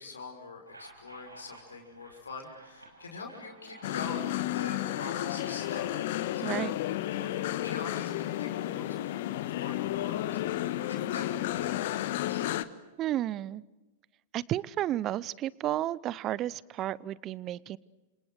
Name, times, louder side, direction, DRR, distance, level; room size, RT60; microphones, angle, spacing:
voice 1, 0.0-6.6 7.1-12.5, left 4 dB, 75° left, 3 dB, 6.0 m, -44 dB
sound 1, 0.6-6.1, right 1 dB, 90° right, 5.6 m, -52 dB
sound 2, 3.8-12.6, left 14 dB, 55° left, 1.3 m, -32 dB
voice 2, 6.4-6.7 13.0-13.6 14.3-17.8, right 13 dB, 35° right, 23 dB, 0.8 m, -32 dB
30.0 x 26.5 x 6.4 m, 1.2 s
figure-of-eight pair, 95°, 0 cm